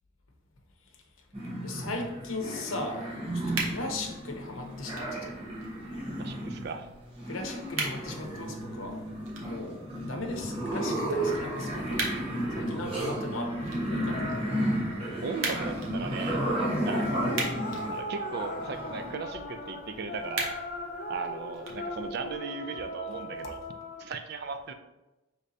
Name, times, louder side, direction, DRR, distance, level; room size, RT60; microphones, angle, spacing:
sound 1, 1.3-19.1, right 1 dB, 25° right, 1.0 m, -33 dB
voice 1, 1.6-3.1 3.5-5.3 7.3-9.0 9.4-12.0 12.5-14.4, left 2 dB, 70° left, 2 dB, 0.7 m, -37 dB
sound 2, 3.4-22.4, right 3 dB, 70° right, 0.8 m, -41 dB
voice 2, 6.2-6.9 15.2-16.5 16.9-20.6 21.1-23.6 24.0-24.7, right 4 dB, 50° right, 8 dB, 0.3 m, -37 dB
sound 3, 14.1-15.5 16.4-24.1, left 1 dB, 40° left, 0.3 m, -38 dB
5.0 x 3.3 x 2.7 m, 1.0 s
head